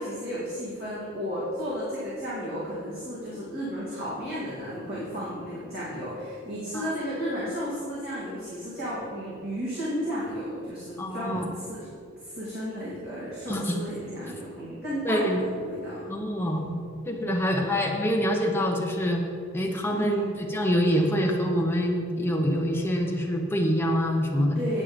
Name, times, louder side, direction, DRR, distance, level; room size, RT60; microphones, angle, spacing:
voice 1, 0.0-11.9 12.2-16.1 17.2-17.8 19.6-20.3 24.5-24.8, equal, 50° right, -9 dB, 2.4 m, -33 dB
voice 2, 11.0-11.5 13.5-13.8 15.0-15.4 16.1-16.8 17.1-19.2 19.5-24.6, equal, 10° left, 0 dB, 1.0 m, -25 dB
8.8 x 8.7 x 5.1 m, 2.4 s
head